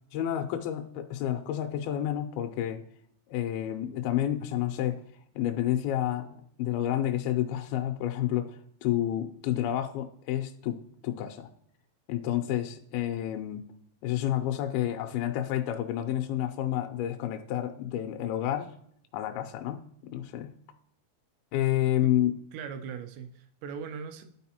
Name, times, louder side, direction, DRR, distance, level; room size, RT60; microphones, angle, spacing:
voice 1, 0.1-2.8 3.3-5.0 5.4-11.5 12.1-13.6 14.0-18.8 19.1-20.5 21.5-22.4, left 12 dB, 85° left, 5 dB, 2.2 m, -30 dB
voice 2, 22.5-24.2, right 6 dB, 90° right, 7 dB, 2.8 m, -39 dB
11.5 x 4.2 x 2.8 m, 0.66 s
omnidirectional pair, 4.8 m